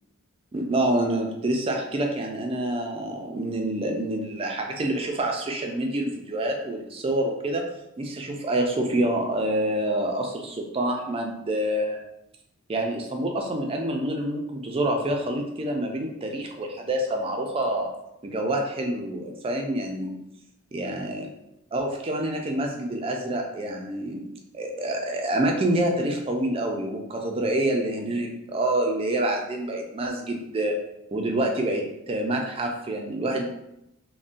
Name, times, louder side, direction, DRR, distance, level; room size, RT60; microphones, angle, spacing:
voice 1, 0.5-7.6 8.0-12.0 12.7-17.9 18.2-20.2 20.7-21.3 21.7-24.3 24.5-30.8 31.1-33.5, right 1 dB, 25° right, 2 dB, 0.3 m, -27 dB
3.6 x 2.1 x 2.5 m, 0.85 s
head